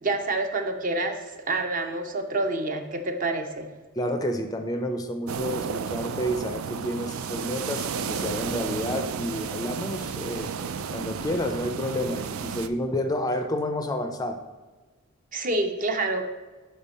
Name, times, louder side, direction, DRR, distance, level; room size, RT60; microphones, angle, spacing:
voice 1, 0.0-3.7 15.3-16.2, right 2 dB, 40° right, 6 dB, 0.6 m, -27 dB
voice 2, 4.0-10.6 10.9-14.4, left 1 dB, 20° left, 7 dB, 0.4 m, -30 dB
sound 1, 5.3-12.7, right 6 dB, 85° right, 0.4 m, -32 dB
5.5 x 5.3 x 4.1 m, 1.3 s
head